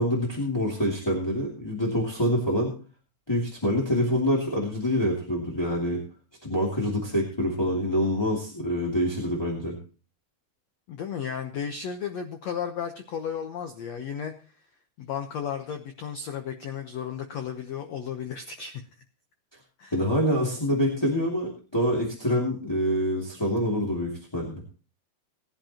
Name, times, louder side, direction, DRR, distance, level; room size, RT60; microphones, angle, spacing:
voice 1, 0.0-2.7 3.3-6.0 6.4-9.8 19.9-24.6, equal, 10° left, -4 dB, 1.8 m, -26 dB
voice 2, 10.9-14.3 15.0-18.8 19.8-19.9, left 7 dB, 85° left, 6 dB, 1.5 m, -34 dB
19.5 x 11.0 x 2.9 m, 0.37 s
omnidirectional pair, 4.6 m